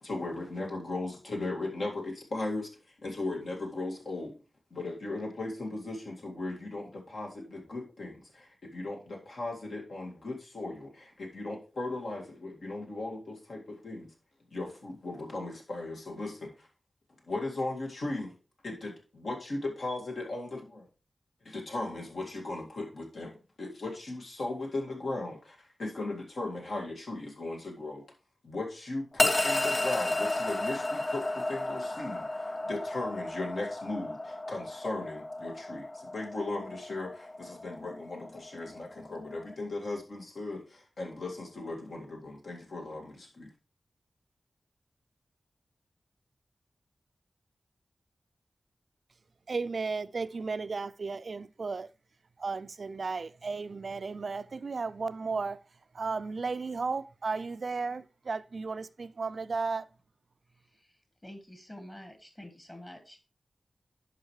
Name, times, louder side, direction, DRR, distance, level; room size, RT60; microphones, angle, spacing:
voice 1, 0.0-2.7 3.0-4.3 4.7-14.1 14.5-16.7 17.3-18.3 18.6-20.9 21.5-28.0 28.4-43.5, left 2 dB, 75° left, 2.0 m, -37 dB
sound 1, 29.2-39.5, left 2 dB, 40° left, 0.8 m, -33 dB
voice 2, 49.5-51.9 52.4-55.6 55.9-59.9, right 4 dB, 65° right, 0.3 m, -34 dB
voice 3, 60.7-63.2, left 1 dB, 25° left, 1.5 m, -48 dB
11.0 x 5.1 x 3.1 m
wide cardioid pair, 65°, 0 cm